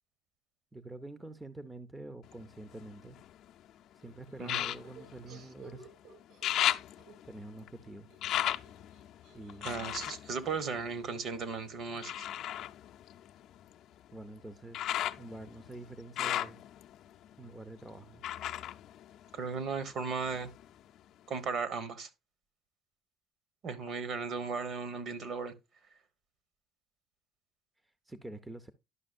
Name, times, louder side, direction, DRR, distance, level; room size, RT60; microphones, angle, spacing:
voice 1, 0.7-3.2 4.0-5.9 7.2-8.1 9.3-9.7 14.1-16.6 17.4-18.2 28.1-28.7, right 2 dB, 10° right, 0.5 m, -46 dB
sound 1, 2.2-3.6 4.4-5.9 6.2-11.4 12.0-19.8 20.2-21.0 21.5-21.6, left 12 dB, 60° left, 0.5 m, -37 dB
sound 2, 4.0-7.5 7.7-12.2, right 5 dB, 70° right, 5.8 m, -58 dB
voice 2, 9.6-12.3 19.3-20.5 21.3-22.1 23.6-25.5, right 5 dB, 50° right, 1.1 m, -36 dB
11.0 x 6.0 x 2.4 m
cardioid pair, 140°, 0 cm